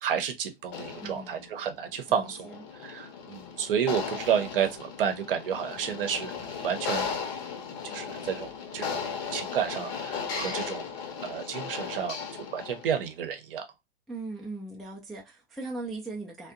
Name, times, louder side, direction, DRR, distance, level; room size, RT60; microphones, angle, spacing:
voice 1, 0.0-2.5 2.8-6.3 6.6-7.1 7.8-9.0 9.3-10.8 11.2-13.7, right 8 dB, 65° right, 0.7 m, -31 dB
sound 1, 0.7-13.0, left 6 dB, 45° left, 0.8 m, -36 dB
voice 2, 1.0-1.6 2.1-2.7 14.1-16.5, right 3 dB, ahead, 0.3 m, -39 dB
2.6 x 2.2 x 2.5 m
figure-of-eight pair, 100°, 30 cm